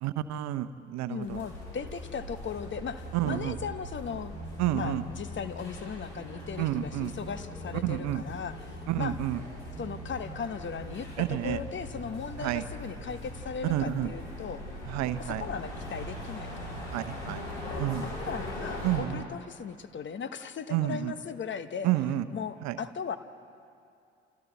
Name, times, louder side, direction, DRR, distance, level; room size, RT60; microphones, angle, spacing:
voice 1, 0.0-1.4 3.1-3.6 4.6-5.0 6.6-7.1 7.8-8.2 8.9-9.4 11.2-11.6 12.4-12.6 13.6-14.1 14.9-15.5 16.9-17.4 17.8-18.1 18.8-19.3 20.7-21.1 21.8-22.3 22.6-22.8, right 13 dB, 60° right, 13 dB, 0.9 m, -30 dB
voice 2, 1.1-4.3 4.7-9.2 9.8-14.6 15.2-16.7 17.6-21.9 22.3-23.2, left 6 dB, 35° left, 11 dB, 1.2 m, -38 dB
sound 1, 1.2-19.0, left 1 dB, 80° left, 5.5 m, -40 dB
28.5 x 28.0 x 4.1 m, 2.5 s
figure-of-eight pair, 50°, 32 cm